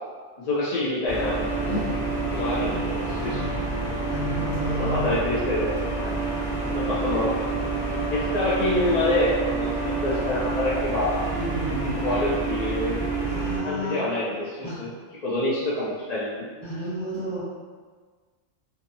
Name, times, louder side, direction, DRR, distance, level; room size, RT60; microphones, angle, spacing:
voice 1, 0.4-1.4 2.3-3.5 4.8-6.1 6.7-7.4 8.1-11.2 12.0-13.0 13.6-14.9 15.2-16.5, left 1 dB, 60° left, -8 dB, 0.4 m, -26 dB
sound 1, 1.1-13.6, right 3 dB, 45° left, 1.0 m, -28 dB
voice 2, 2.5-3.6 4.1-5.1 6.2-6.5 11.3-12.0 13.2-14.0 14.6-14.8 16.6-17.4, equal, 20° left, -13 dB, 1.3 m, -32 dB
2.5 x 2.3 x 2.6 m, 1.5 s
omnidirectional pair, 1.2 m